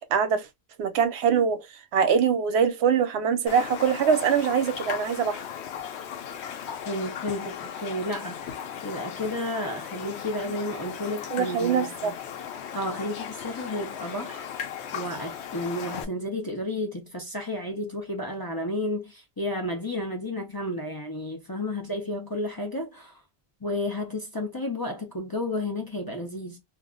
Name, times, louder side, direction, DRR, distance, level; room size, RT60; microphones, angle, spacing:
voice 1, 0.1-0.5 0.8-5.4 11.3-12.1, right 7 dB, 85° right, 0.9 m, -23 dB
Raindrop, 3.5-16.0, left 8 dB, 85° left, 0.8 m, -37 dB
voice 2, 6.9-8.5 8.8-12.1 12.7-14.4 14.9-23.2 23.6-26.6, left 1 dB, 30° left, 0.4 m, -32 dB
2.4 x 2.1 x 3.6 m
omnidirectional pair, 1.1 m